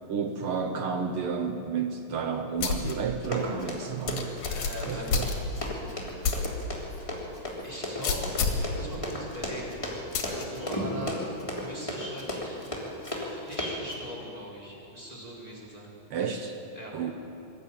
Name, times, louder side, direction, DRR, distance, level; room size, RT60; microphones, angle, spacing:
voice 1, 0.1-4.3 4.8-5.3 16.1-16.6 16.9-17.1, right 6 dB, 85° right, 6 dB, 1.2 m, -31 dB
sound 1, 2.6-2.9 3.4-3.5 4.1-5.7 6.2-6.5 6.9-7.0 8.0-8.7 10.1-10.4, left 5 dB, 65° left, 3.1 m, -29 dB
Run, 3.2-13.9, left 1 dB, 10° left, 2.9 m, -35 dB
voice 2, 4.5-5.2 7.0-7.3 7.6-9.8 10.2-12.6 13.3-15.9 16.7-17.0, equal, 10° right, -5 dB, 4.7 m, -40 dB
22.5 x 13.5 x 8.9 m, 2.7 s
omnidirectional pair, 3.9 m